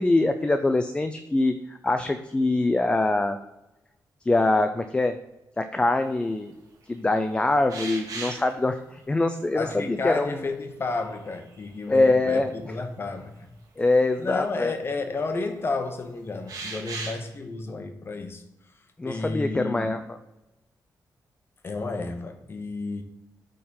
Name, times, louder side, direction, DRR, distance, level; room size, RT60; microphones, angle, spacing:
voice 1, 0.0-3.4 4.3-5.1 5.6-6.5 6.9-10.4 11.9-12.5 13.8-14.7 19.0-20.0, left 2 dB, 15° left, 0.4 m, -23 dB
sound 1, 7.7-8.5 10.0-10.1 11.0-11.9 12.3-12.4 14.3-14.4 16.5-17.2, right 3 dB, 55° right, 1.9 m, -36 dB
voice 2, 9.5-13.5 14.2-18.4 19.0-19.9 21.6-23.0, left 3 dB, 35° left, 0.9 m, -31 dB
8.4 x 3.7 x 4.3 m
wide cardioid pair, 135°, 7 cm